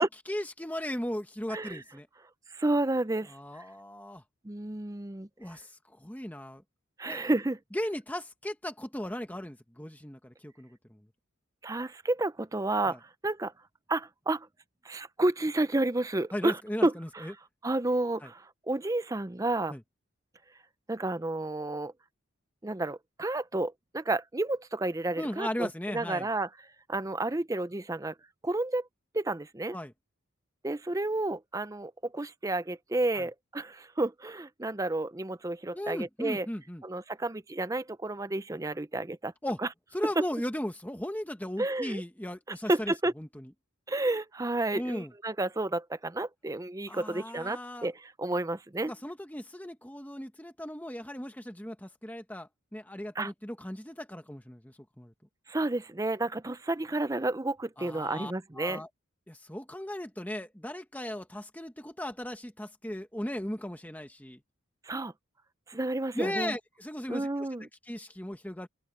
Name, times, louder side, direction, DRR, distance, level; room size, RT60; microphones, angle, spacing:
voice 1, 0.0-2.1 3.3-4.2 5.4-6.6 7.1-7.2 7.7-11.0 12.9-13.0 16.3-17.3 18.2-18.3 19.7-19.8 25.2-26.3 29.7-29.9 33.1-33.3 35.7-36.8 39.4-39.6 39.9-43.5 44.7-45.1 46.9-47.9 48.9-55.1 57.8-58.9 59.3-64.4 66.1-67.5 67.9-68.7, left 1 dB, 10° left, 1.2 m, -37 dB
voice 2, 1.5-1.8 2.5-3.3 4.4-5.3 7.0-7.6 11.6-13.5 13.9-14.5 14.8-17.3 17.6-19.7 20.9-21.9 22.6-26.5 26.9-28.1 28.4-28.9 29.1-29.8 30.6-36.5 36.8-39.3 41.6-42.0 42.5-43.1 43.9-48.9 53.2-53.3 55.5-58.8 64.8-65.1 65.7-66.6 67.1-67.7, right 2 dB, 15° right, 0.5 m, -31 dB
open air
head